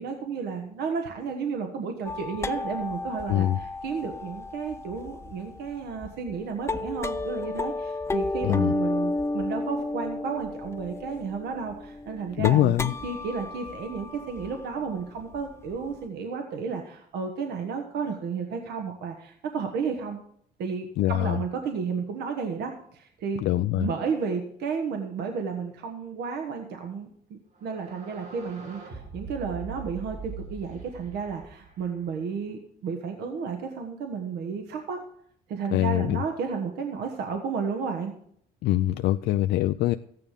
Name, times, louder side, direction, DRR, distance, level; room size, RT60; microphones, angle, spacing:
voice 1, 0.0-20.2 20.6-23.4 23.8-35.0 35.5-38.1, right 5 dB, 75° right, 4 dB, 1.4 m, -32 dB
sound 1, 2.1-15.9, left 2 dB, 15° left, 0.5 m, -33 dB
voice 2, 8.4-8.7 12.4-12.9 21.0-21.4 23.4-23.9 35.7-36.2 38.6-39.9, left 14 dB, 80° left, 9 dB, 0.4 m, -23 dB
sound 2, 27.5-32.4, right 5 dB, 60° right, 6.8 m, -42 dB
14.0 x 9.4 x 5.1 m, 0.68 s
cardioid pair, 110°, 17 cm